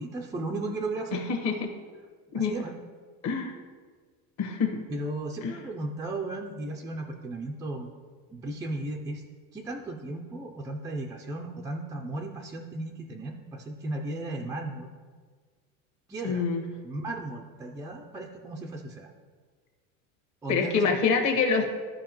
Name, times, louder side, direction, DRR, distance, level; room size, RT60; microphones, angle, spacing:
voice 1, 0.0-1.2 2.3-2.7 4.9-7.9 8.3-9.2 9.5-14.9 16.1-16.4 16.8-19.1 20.4-21.0, right 2 dB, 10° right, 0 dB, 0.3 m, -35 dB
voice 2, 1.1-1.7 2.3-2.5 3.2-3.6 4.4-4.8 5.4-5.5 16.2-16.6 20.5-21.7, left 5 dB, 45° left, 3 dB, 1.4 m, -26 dB
13.5 x 5.0 x 3.0 m, 1.5 s
supercardioid pair, 135°, 39 cm